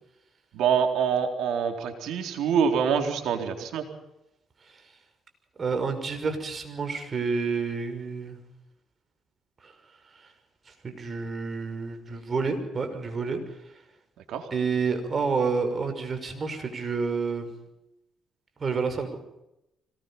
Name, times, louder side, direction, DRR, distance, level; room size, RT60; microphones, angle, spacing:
voice 1, 0.5-3.9 14.3-14.5, right 7 dB, 80° right, 4 dB, 4.1 m, -25 dB
voice 2, 5.6-8.4 9.6-9.8 10.1-10.2 10.7-13.4 14.5-17.5 18.6-19.2, right 4 dB, 40° right, 7 dB, 6.0 m, -29 dB
25.5 x 20.0 x 5.8 m, 0.86 s
cardioid pair, 90°, 0 cm